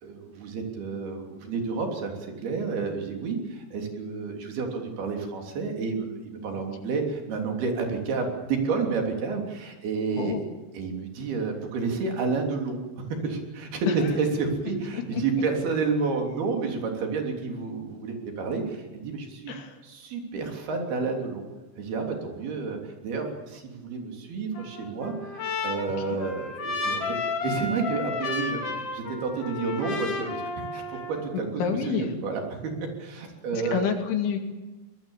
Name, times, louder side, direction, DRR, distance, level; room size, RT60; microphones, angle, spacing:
voice 1, 0.0-10.4 10.7-19.5 19.8-21.4 21.8-27.2 27.4-31.5 31.9-32.0 32.2-32.7 33.0-33.8, right 4 dB, 55° right, 2 dB, 5.0 m, -30 dB
voice 2, 19.5-19.8 26.1-26.2 31.3-32.1 33.5-34.4, left 7 dB, 75° left, 4 dB, 4.8 m, -28 dB
Trumpet, 24.5-31.3, left 4 dB, 40° left, 2.9 m, -32 dB
23.5 x 20.5 x 7.3 m, 1.1 s
omnidirectional pair, 5.5 m